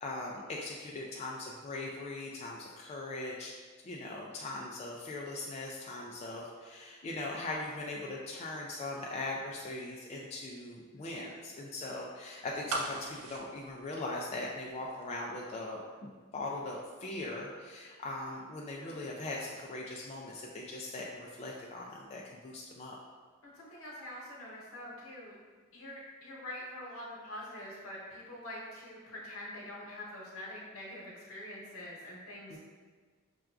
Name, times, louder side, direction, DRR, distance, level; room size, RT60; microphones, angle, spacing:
voice 1, 0.0-3.5 3.8-23.0 32.5-32.6, left 2 dB, 30° left, -3 dB, 0.3 m, -40 dB
sound 1, 12.7-14.7 15.0-15.1, right 2 dB, 75° right, 0.5 m, -38 dB
voice 2, 23.4-25.3 25.7-32.6, left 1 dB, 70° left, -4 dB, 1.0 m, -45 dB
5.7 x 2.3 x 2.4 m, 1.6 s
head